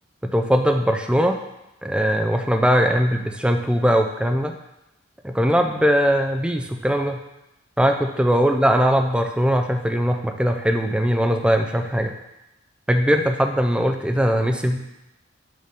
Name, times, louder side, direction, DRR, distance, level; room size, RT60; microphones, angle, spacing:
voice 1, 0.2-1.4 1.8-4.5 5.2-7.2 7.8-12.2 12.9-14.8, equal, 5° right, 5 dB, 0.4 m, -20 dB
6.5 x 3.5 x 5.1 m, 0.93 s
head